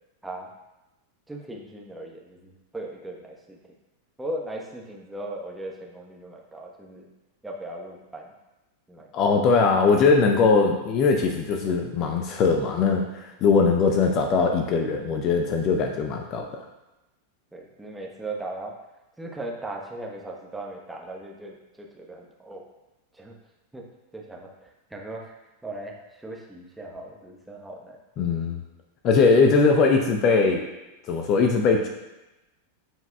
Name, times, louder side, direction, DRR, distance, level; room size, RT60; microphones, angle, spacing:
voice 1, 1.3-3.6 4.2-7.1 7.4-8.3 8.9-9.3 17.5-18.7 19.2-22.6 23.1-23.3 23.7-23.8 24.1-25.3 25.6-28.0 29.0-29.1, right 2 dB, 5° right, -1 dB, 1.1 m, -38 dB
voice 2, 9.1-16.6 28.2-28.6 29.0-30.7 31.1-31.9, left 4 dB, 35° left, 3 dB, 0.7 m, -21 dB
13.0 x 4.8 x 2.3 m, 1.0 s
figure-of-eight pair, 90°, 0 cm